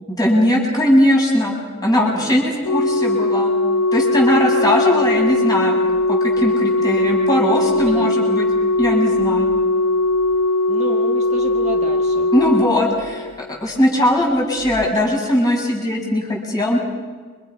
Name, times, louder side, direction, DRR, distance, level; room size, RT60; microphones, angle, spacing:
voice 1, 0.1-1.5 1.8-3.5 3.9-5.7 6.1-8.5 8.8-9.5 12.3-16.8, equal, 20° left, -2 dB, 7.4 m, -19 dB
voice 2, 1.8-2.4 7.8-8.3 10.7-12.3, right 2 dB, 35° right, 2 dB, 1.6 m, -31 dB
Organ, 2.7-13.5 14.7-14.9, left 2 dB, 80° left, 0.9 m, -19 dB
29.5 x 26.5 x 6.1 m, 1.5 s
head